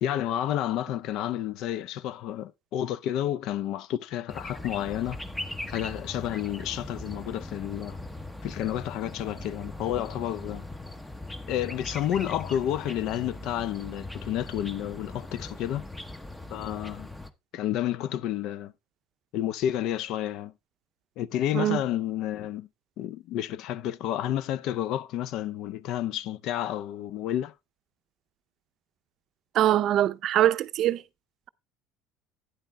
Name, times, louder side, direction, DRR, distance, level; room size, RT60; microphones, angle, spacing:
voice 1, 0.0-5.2 5.7-8.0 8.4-10.6 11.5-15.8 16.5-17.1 17.5-18.7 19.3-20.5 21.2-22.7 23.0-27.5, left 11 dB, 65° left, 0.5 m, -30 dB
sound 1, 4.3-17.3, left 2 dB, 10° left, 0.8 m, -40 dB
voice 2, 29.5-31.0, right 12 dB, 55° right, 0.5 m, -23 dB
11.5 x 9.4 x 2.2 m
supercardioid pair, 100°, 0 cm